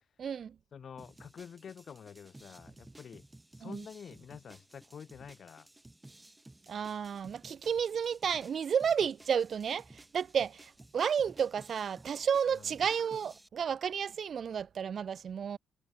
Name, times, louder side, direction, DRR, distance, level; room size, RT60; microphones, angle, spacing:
voice 1, 0.2-0.5 3.6-3.8 6.7-15.6, right 7 dB, 55° right, 0.5 m, -32 dB
voice 2, 0.7-3.2 3.5-5.7 12.5-12.7, left 7 dB, 50° left, 7.2 m, -48 dB
sound 1, 1.0-13.5, right 2 dB, 10° right, 4.1 m, -56 dB
cardioid pair, 90°, 0 cm